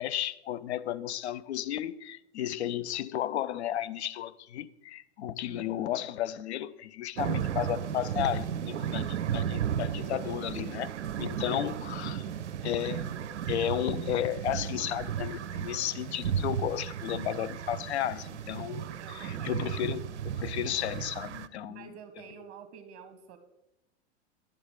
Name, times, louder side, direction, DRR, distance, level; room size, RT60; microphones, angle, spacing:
voice 1, 0.0-10.9 11.2-12.3 12.6-21.9, left 11 dB, 70° left, 0.5 m, -33 dB
voice 2, 5.4-6.1 11.6-11.8 19.0-19.6 21.7-23.4, right 7 dB, 45° right, 0.9 m, -49 dB
sound 1, 7.2-21.5, right 8 dB, 80° right, 0.5 m, -34 dB
10.5 x 7.9 x 3.7 m
figure-of-eight pair, 95°, 35 cm